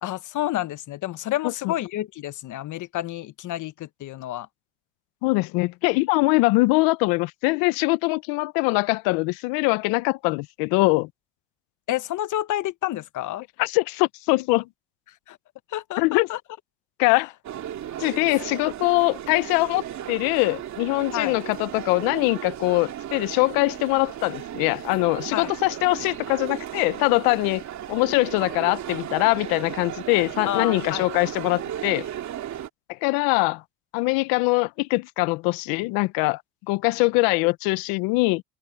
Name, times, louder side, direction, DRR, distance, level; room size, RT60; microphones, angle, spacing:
voice 1, 0.0-4.5 11.9-13.4 15.3-15.4 15.7-16.4 17.1-17.2 21.1-21.4 25.3-25.5 30.5-31.1, left 14 dB, 55° left, 1.2 m, -29 dB
voice 2, 5.2-11.1 13.6-14.7 16.0-16.3 17.0-17.3 18.0-27.6 27.9-32.1 32.9-33.6 33.9-36.4 36.7-38.4, left 24 dB, 75° left, 1.0 m, -22 dB
sound 1, 17.4-32.7, right 11 dB, 50° right, 2.6 m, -35 dB
supercardioid pair, 80°, 35 cm